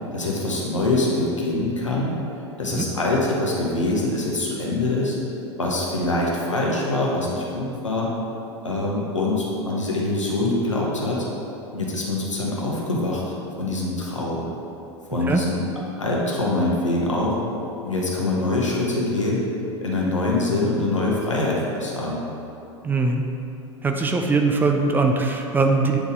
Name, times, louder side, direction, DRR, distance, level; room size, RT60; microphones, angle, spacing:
voice 1, 0.1-2.1 2.6-5.2 5.6-8.1 8.6-11.3 11.7-13.2 13.6-14.5 15.1-15.6 16.0-17.4 17.8-19.4 19.8-22.2, left 2 dB, 80° left, -4 dB, 1.3 m, -24 dB
voice 2, 22.8-23.2 23.8-26.0, right 3 dB, 10° right, 3 dB, 0.4 m, -21 dB
8.6 x 4.0 x 3.7 m, 2.8 s
figure-of-eight pair, 85°, 16 cm